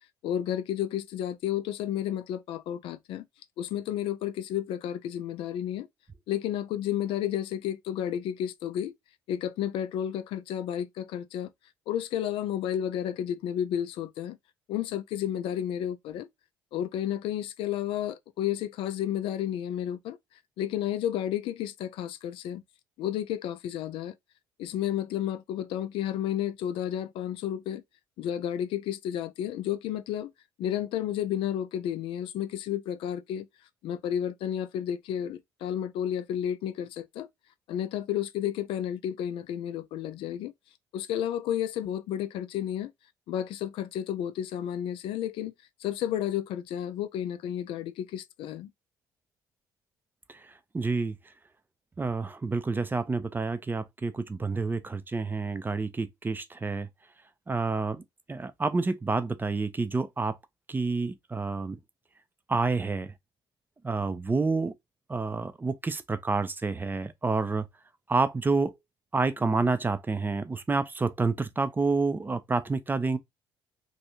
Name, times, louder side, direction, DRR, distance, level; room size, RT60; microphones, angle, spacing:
voice 1, 0.2-3.2 3.6-5.9 6.3-8.9 9.3-11.5 11.9-14.4 14.7-16.3 16.7-20.2 20.6-22.6 23.0-24.1 24.6-27.8 28.2-30.3 30.6-33.5 33.8-37.3 37.7-40.5 40.9-42.9 43.3-45.5 45.8-48.7, left 10 dB, 55° left, 0.4 m, -31 dB
voice 2, 50.7-51.1 52.0-56.9 57.5-58.0 58.3-60.4 60.7-61.8 62.5-63.1 63.8-64.7 65.1-67.6 68.1-68.7 69.1-73.2, right 3 dB, 20° right, 0.5 m, -28 dB
3.1 x 2.6 x 2.8 m
figure-of-eight pair, 50°, 11 cm